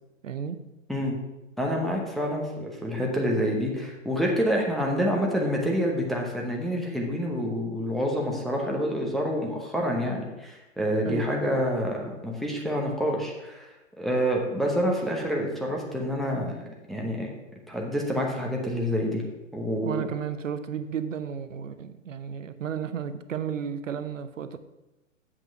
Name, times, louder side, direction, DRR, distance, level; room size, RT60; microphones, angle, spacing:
voice 1, 0.2-0.6 11.0-11.6 19.8-24.6, right 8 dB, 70° right, 12 dB, 0.7 m, -33 dB
voice 2, 1.6-13.7 14.0-17.3 17.7-19.2 19.5-20.1, equal, ahead, -2 dB, 0.9 m, -27 dB
7.9 x 5.9 x 5.8 m, 1.0 s
figure-of-eight pair, 125°, 39 cm